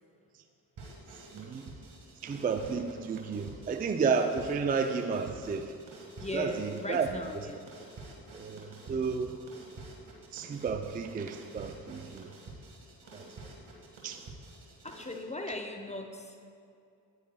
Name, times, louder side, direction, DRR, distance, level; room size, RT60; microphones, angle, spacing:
sound 1, 0.8-15.2, right 2 dB, 55° right, 1.7 m, -49 dB
voice 1, 1.3-1.7 2.2-5.7 6.3-7.1 8.3-9.4 10.3-12.3 13.1-13.3 14.0-14.2, right 5 dB, 20° right, 7 dB, 0.4 m, -32 dB
voice 2, 6.2-7.6 13.1-13.2 14.8-16.4, left 2 dB, 15° left, 3 dB, 0.7 m, -38 dB
9.4 x 9.3 x 2.3 m, 2.4 s
hypercardioid pair, 40°, 48 cm